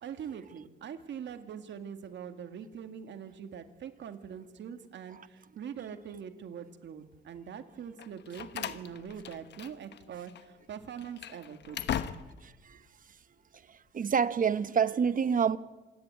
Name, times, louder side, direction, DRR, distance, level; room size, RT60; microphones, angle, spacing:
voice 1, 0.0-12.0, right 8 dB, 65° right, 2.2 m, -43 dB
Slam, 8.0-10.0 10.3-10.4 11.0-12.5, left 9 dB, 60° left, 1.2 m, -38 dB
voice 2, 12.4-12.8 13.7-15.6, right 7 dB, 45° right, 1.0 m, -28 dB
26.5 x 11.0 x 8.9 m
cardioid pair, 90°, 20 cm